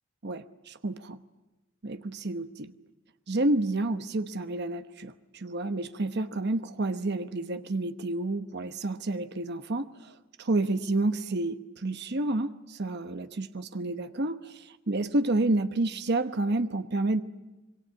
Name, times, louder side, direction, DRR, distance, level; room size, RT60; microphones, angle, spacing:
voice 1, 0.2-1.2 1.8-2.7 3.3-17.2, right 2 dB, 55° right, 10 dB, 1.0 m, -30 dB
26.5 x 22.5 x 8.1 m, 1.1 s
head